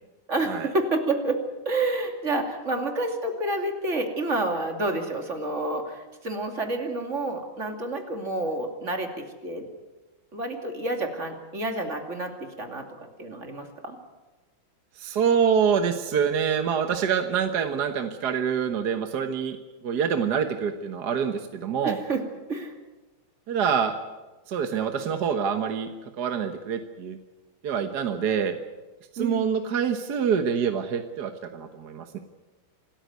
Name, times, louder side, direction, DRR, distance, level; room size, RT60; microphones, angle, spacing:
voice 1, 0.3-9.7 10.3-14.0 21.8-22.2 22.5-22.7 29.2-29.6, right 2 dB, 35° right, 4 dB, 2.9 m, -29 dB
voice 2, 15.0-19.6 19.8-22.0 23.5-23.9 24.5-25.9 26.2-27.2 27.6-28.6 29.1-32.2, right 7 dB, 55° right, 7 dB, 1.6 m, -26 dB
26.5 x 13.5 x 9.5 m, 1.2 s
omnidirectional pair, 2.2 m